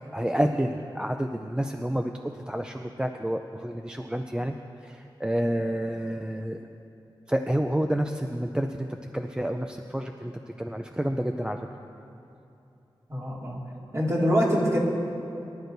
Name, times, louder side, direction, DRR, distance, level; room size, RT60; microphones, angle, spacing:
voice 1, 0.1-4.6 4.8-6.6 7.3-8.9 9.1-10.3 10.6-11.6, equal, 10° right, 5 dB, 0.4 m, -29 dB
voice 2, 13.1-13.6 13.9-14.8, equal, 35° right, -4 dB, 2.4 m, -24 dB
23.5 x 11.5 x 2.7 m, 2.8 s
wide cardioid pair, 105°, 9 cm